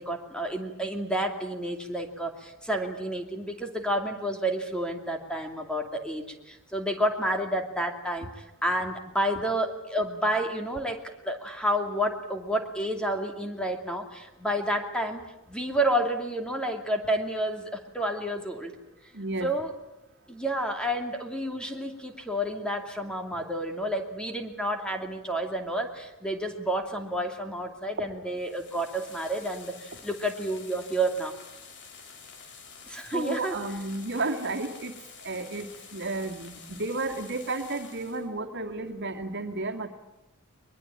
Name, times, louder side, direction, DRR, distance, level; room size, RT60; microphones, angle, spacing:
voice 1, 0.0-18.7 19.4-19.7 20.3-31.3 32.9-33.6, right 1 dB, 5° left, 4 dB, 2.6 m, -30 dB
voice 2, 19.1-19.5 33.1-34.9 35.2-39.9, right 2 dB, 55° right, 4 dB, 2.3 m, -32 dB
sound 1, 28.3-38.3, left 5 dB, 55° left, 3.4 m, -48 dB
22.5 x 22.0 x 8.8 m, 0.91 s
head